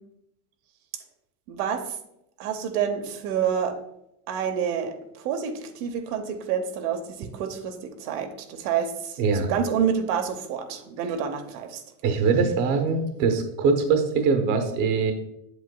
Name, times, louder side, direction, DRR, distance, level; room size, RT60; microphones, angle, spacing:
voice 1, 1.5-2.0 2.4-3.8 4.3-11.8, right 7 dB, 70° right, 6 dB, 1.0 m, -28 dB
voice 2, 9.2-9.5 12.0-15.1, right 5 dB, 40° right, 6 dB, 0.9 m, -22 dB
8.0 x 7.0 x 2.2 m, 0.81 s
supercardioid pair, 150°, 46 cm